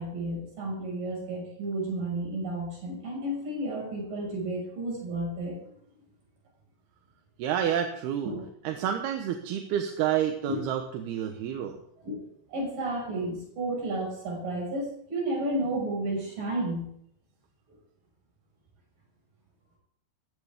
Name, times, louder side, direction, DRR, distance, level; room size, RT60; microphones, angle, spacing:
voice 1, 0.0-5.6 8.2-8.4 10.5-10.6 12.0-12.2 12.5-16.9, right 1 dB, 50° right, -1 dB, 7.6 m, -32 dB
voice 2, 7.4-8.3 8.6-11.8, right 9 dB, 70° right, 4 dB, 2.9 m, -29 dB
18.5 x 15.0 x 3.7 m, 0.71 s
omnidirectional pair, 5.0 m